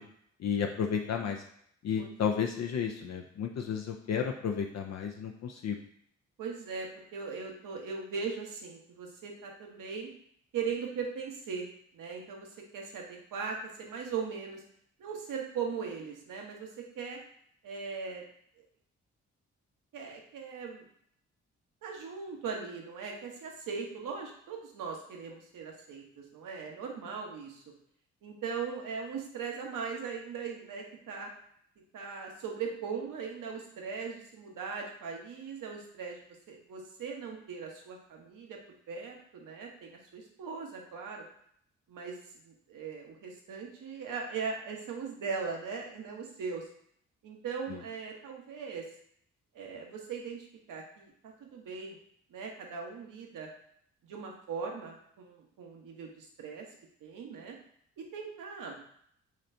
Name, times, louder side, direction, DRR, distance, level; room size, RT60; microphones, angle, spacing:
voice 1, 0.4-1.4 1.8-5.8 47.7-47.8, left 7 dB, 50° left, 3 dB, 0.5 m, -32 dB
voice 2, 6.4-10.1 10.5-11.7 11.9-14.6 15.0-17.2 17.6-18.2 18.6-18.7 19.9-20.9 21.8-27.6 28.2-31.3 31.9-36.2 36.5-38.6 38.9-41.2 41.9-42.2 42.4-46.7 47.2-48.9 49.5-52.0 52.3-53.5 54.0-56.7 57.0-57.6 58.0-58.8, right 5 dB, 65° right, 1 dB, 1.0 m, -39 dB
4.0 x 3.1 x 2.7 m, 0.68 s
hypercardioid pair, 40°, 35 cm